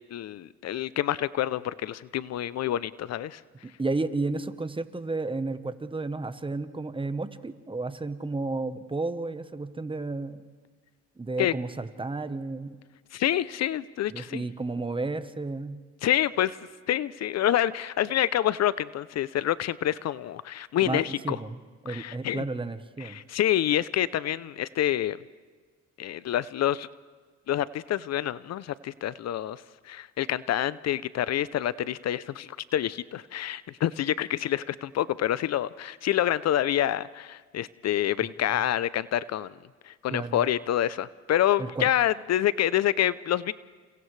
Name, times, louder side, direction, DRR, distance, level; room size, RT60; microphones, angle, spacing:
voice 1, 0.1-3.4 11.4-11.5 13.1-14.4 16.0-16.6 16.9-21.4 21.9-22.4 23.0-25.2 26.0-26.9 27.5-39.5 39.8-43.5, left 12 dB, 60° left, 18 dB, 0.5 m, -27 dB
voice 2, 3.6-10.4 11.2-12.8 14.1-15.8 20.8-23.2 38.2-38.3 40.1-40.4 41.6-41.9, right 3 dB, 15° right, 11 dB, 1.0 m, -32 dB
29.5 x 29.0 x 3.2 m, 1.5 s
cardioid pair, 90°, 30 cm